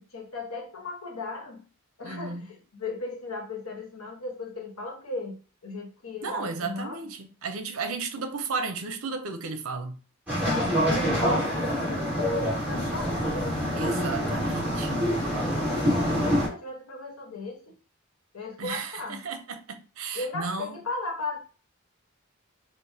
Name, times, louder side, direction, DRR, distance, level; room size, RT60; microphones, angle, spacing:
voice 1, 0.0-1.7 2.0-7.1 10.4-13.7 15.4-17.7 18.3-19.2 20.1-21.4, left 3 dB, 85° left, 1.1 m, -36 dB
voice 2, 2.0-2.5 6.2-10.0 13.8-15.0 18.6-20.7, right 4 dB, 80° right, 0.6 m, -34 dB
sound 1, 10.3-16.5, equal, 5° right, 1.7 m, -26 dB
5.0 x 2.1 x 2.7 m
head